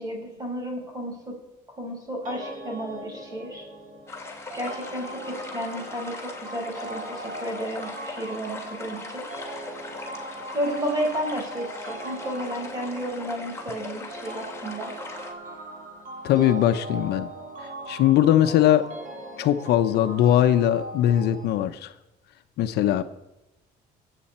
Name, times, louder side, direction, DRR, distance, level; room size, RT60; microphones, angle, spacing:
voice 1, 0.0-1.3 1.8-3.6 4.5-9.3 10.2-14.9, equal, 20° right, 1 dB, 5.3 m, -32 dB
sound 1, 2.3-21.5, right 1 dB, 50° right, 3.4 m, -39 dB
sound 2, 4.1-15.3, left 3 dB, 15° left, 2.4 m, -40 dB
voice 2, 16.2-17.3 17.9-18.8 19.4-21.9 22.6-23.0, left 11 dB, 75° left, 10 dB, 0.8 m, -20 dB
23.5 x 8.3 x 4.4 m, 0.97 s
cardioid pair, 110°, 17 cm